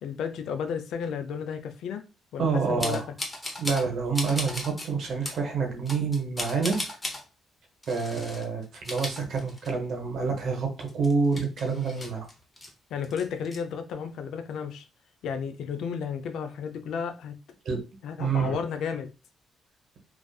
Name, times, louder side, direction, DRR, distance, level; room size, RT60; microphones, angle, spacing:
voice 1, 0.0-2.0 2.3-3.0 12.9-14.9 15.2-17.3 18.0-19.1, left 6 dB, 80° left, 0.4 m, -33 dB
voice 2, 2.4-3.1 3.6-6.8 7.9-12.3 17.6-17.8 18.2-18.5, right 5 dB, 65° right, 0.8 m, -27 dB
sound 1, 2.8-3.9 4.1-4.9 5.2-5.4 5.9-7.2 7.8-8.4 8.7-9.9 10.3-10.4 10.8-12.7 13.0-13.6, left 1 dB, 15° left, 0.7 m, -36 dB
2.4 x 2.4 x 2.3 m
cardioid pair, 90°, 0 cm